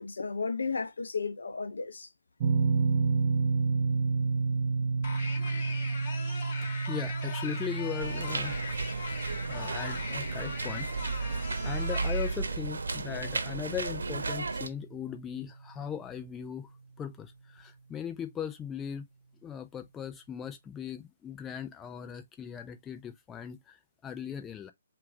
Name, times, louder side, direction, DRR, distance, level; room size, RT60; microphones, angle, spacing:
voice 1, 0.0-2.1, left 4 dB, 75° left, 0.6 m, -34 dB
sound 1, 2.4-15.3, right 4 dB, 40° right, 0.6 m, -32 dB
sound 2, 5.0-12.4, left 4 dB, 40° left, 1.8 m, -40 dB
voice 2, 6.9-8.6 9.5-16.7 17.0-19.1 19.4-24.7, left 8 dB, 15° left, 0.5 m, -39 dB
sound 3, 8.0-14.7, right 3 dB, 75° right, 1.0 m, -34 dB
4.5 x 2.5 x 3.5 m
figure-of-eight pair, 145°, 0 cm